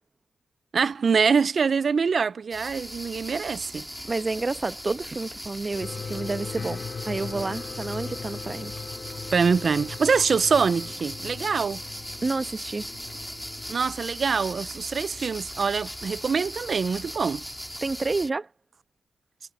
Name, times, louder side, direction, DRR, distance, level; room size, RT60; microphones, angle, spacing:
voice 1, 0.7-3.9 9.3-11.8 13.7-17.4, right 5 dB, 60° right, 0.7 m, -24 dB
sound 1, 2.5-18.3, equal, ahead, 2.3 m, -39 dB
voice 2, 4.1-8.7 12.2-12.9 17.8-18.5, right 3 dB, 40° right, 1.3 m, -29 dB
sound 2, 5.8-13.9, left 5 dB, 55° left, 2.9 m, -39 dB
supercardioid pair, 45°, 0 cm